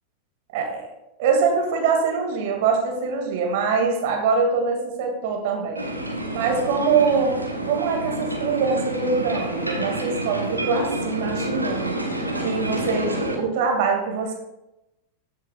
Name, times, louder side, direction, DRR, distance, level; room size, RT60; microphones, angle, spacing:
voice 1, 0.5-0.9 1.2-5.9 6.3-7.4 7.6-11.9 12.4-14.4, right 5 dB, 50° right, 1 dB, 2.3 m, -23 dB
sound 1, 5.8-13.4, right 1 dB, 85° right, 1.4 m, -28 dB
14.5 x 6.4 x 2.5 m, 0.92 s
figure-of-eight pair, 90°, 0 cm